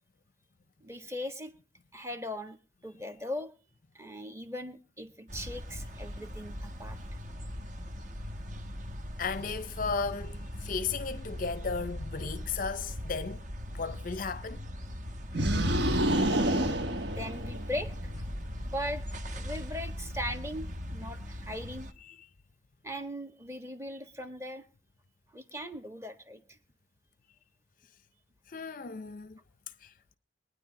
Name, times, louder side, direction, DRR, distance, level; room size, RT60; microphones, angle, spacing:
voice 1, 0.8-1.5 1.9-2.6 2.8-3.5 3.9-7.0 17.1-18.2 18.6-19.0 19.3-21.9 22.8-24.6 25.3-26.4, equal, 15° right, 1.5 m, -39 dB
sound 1, 5.3-21.9, equal, 40° right, 1.2 m, -40 dB
voice 2, 8.9-13.4 13.7-14.7 16.5-16.7 18.6-18.7 22.1-22.3 28.5-29.4 29.8-29.9, left 5 dB, 45° left, 0.5 m, -35 dB
sound 2, 15.3-17.8, right 1 dB, 65° right, 1.3 m, -27 dB
22.0 x 9.8 x 4.0 m
head